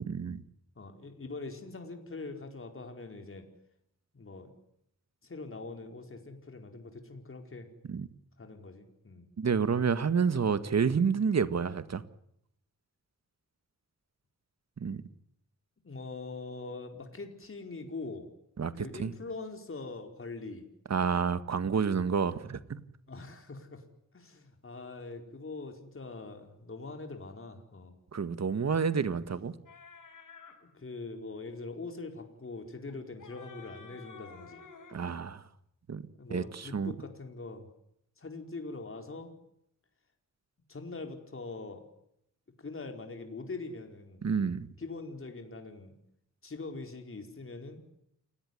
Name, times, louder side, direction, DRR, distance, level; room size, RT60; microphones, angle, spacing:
voice 1, 0.1-0.4 7.9-8.1 9.4-12.0 14.8-15.0 18.6-19.1 20.9-22.8 28.1-29.5 34.9-35.4 35.9-36.0 36.3-36.9 44.2-44.7, right 6 dB, 55° right, 1.8 m, -29 dB
voice 2, 0.8-3.4 4.1-4.5 5.2-7.7 8.4-9.2 15.8-18.3 18.7-20.6 23.1-23.8 24.1-27.9 30.7-34.6 36.2-37.7 38.2-39.3 40.7-41.8 42.6-44.2 44.8-45.9 46.4-47.8, left 3 dB, 45° left, 4.6 m, -43 dB
sound 1, 29.7-30.6 32.9-35.0, left 5 dB, 80° left, 5.6 m, -51 dB
29.0 x 17.5 x 9.6 m
wide cardioid pair, 95°, 31 cm